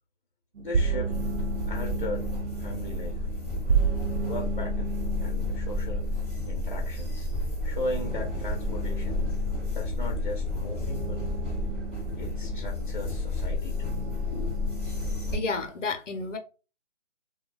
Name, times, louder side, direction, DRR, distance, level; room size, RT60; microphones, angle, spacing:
voice 1, 0.6-1.1 1.7-2.3 2.6-3.3 4.2-6.1 6.5-7.3 7.6-9.2 9.7-11.3 12.2-14.0 14.3-14.7, left 2 dB, 40° left, 0.6 m, -37 dB
sound 1, 0.6-15.7, right 6 dB, 55° right, 0.4 m, -34 dB
sound 2, 1.1-15.4, left 3 dB, 10° right, 0.7 m, -31 dB
voice 2, 15.3-16.4, left 4 dB, 75° left, 0.7 m, -31 dB
2.2 x 2.2 x 3.0 m
figure-of-eight pair, 160°, 37 cm